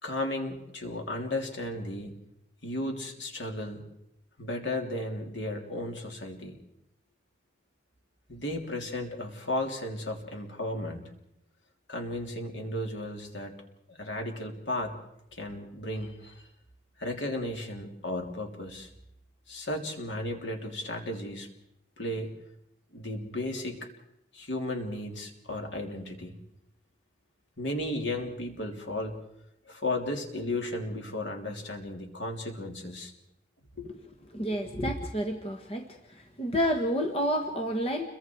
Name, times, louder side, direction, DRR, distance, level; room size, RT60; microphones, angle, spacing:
voice 1, 0.0-2.2 2.6-3.8 4.4-6.6 8.3-11.1 11.9-13.5 13.9-14.9 15.3-16.4 17.0-18.9 19.5-21.5 22.0-22.3 22.9-23.8 24.3-26.3 27.6-29.1 29.7-33.1 33.8-33.9, left 1 dB, 70° left, 2 dB, 3.5 m, -34 dB
voice 2, 34.3-35.9 36.4-38.1, equal, 30° left, 3 dB, 1.6 m, -29 dB
29.5 x 23.0 x 4.7 m, 0.81 s
head